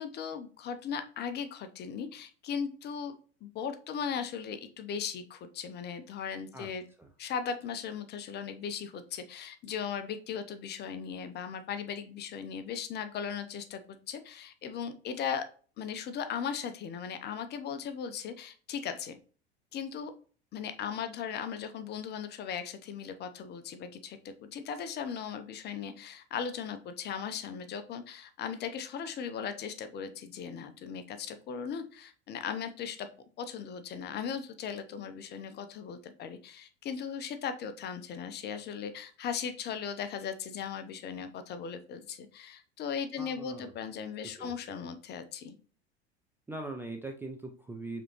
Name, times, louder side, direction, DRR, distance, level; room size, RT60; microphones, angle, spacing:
voice 1, 0.0-3.1 3.4-6.8 7.2-15.4 15.8-19.2 19.7-20.1 20.5-33.1 33.4-45.6, left 7 dB, 30° left, 10 dB, 0.7 m, -38 dB
voice 2, 43.2-43.7 44.4-44.5 46.5-48.0, right 2 dB, 5° right, 3 dB, 0.4 m, -41 dB
4.9 x 3.6 x 2.9 m, 0.40 s
figure-of-eight pair, 75°, 33 cm